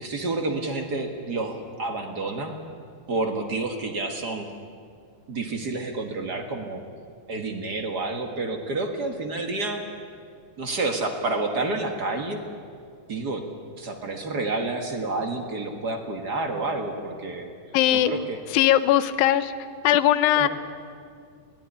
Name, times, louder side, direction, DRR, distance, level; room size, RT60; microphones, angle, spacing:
voice 1, 0.0-2.5 3.1-4.4 5.3-6.8 7.3-9.8 10.6-12.4 13.1-13.4 13.8-17.5 17.9-18.4 20.3-20.5, right 2 dB, 45° right, 4 dB, 1.3 m, -29 dB
voice 2, 17.7-18.1 18.5-19.5 19.8-20.5, left 12 dB, 80° left, 12 dB, 2.6 m, -19 dB
22.5 x 17.0 x 10.0 m, 2.3 s
omnidirectional pair, 4.2 m